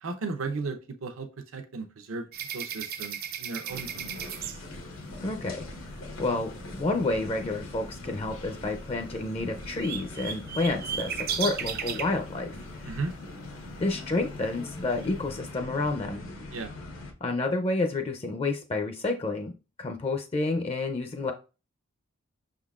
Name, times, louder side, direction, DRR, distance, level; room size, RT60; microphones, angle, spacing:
voice 1, 0.0-2.3 2.5-4.3 12.9-13.1 16.5-16.7, right 3 dB, 80° right, 6 dB, 0.7 m, -35 dB
sound 1, 2.3-5.4 8.9-9.0 9.2-12.2 13.9-14.0 14.4-15.1, right 8 dB, 45° right, 0.4 m, -35 dB
sound 2, 3.7-17.1, left 2 dB, 85° left, 1.1 m, -42 dB
sound 3, 4.6-13.1, equal, 65° left, 0.9 m, -50 dB
voice 2, 5.2-5.6 6.2-13.0 13.8-16.2 17.2-19.5 19.8-21.3, left 2 dB, 30° left, 5 dB, 0.4 m, -29 dB
5.9 x 3.7 x 2.4 m, 0.31 s
head